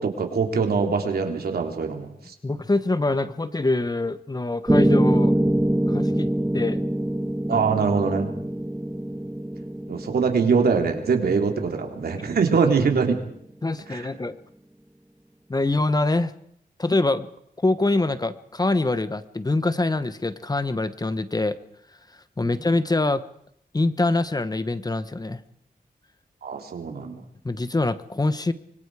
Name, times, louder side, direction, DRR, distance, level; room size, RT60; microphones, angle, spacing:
voice 1, 0.0-2.3 7.5-8.3 9.9-13.2 13.9-14.1 22.4-22.6 26.4-27.2, right 5 dB, 85° right, 4 dB, 3.4 m, -23 dB
voice 2, 2.4-5.5 5.9-6.3 6.5-6.8 7.5-7.6 13.6-14.4 15.5-16.3 16.8-17.3 17.6-21.6 22.4-23.2 23.7-25.4 27.4-28.5, left 2 dB, 25° left, 13 dB, 1.2 m, -24 dB
Piano, 4.7-12.7, right 1 dB, 10° right, 1.0 m, -24 dB
25.0 x 23.5 x 4.9 m, 0.70 s
wide cardioid pair, 85°, 16 cm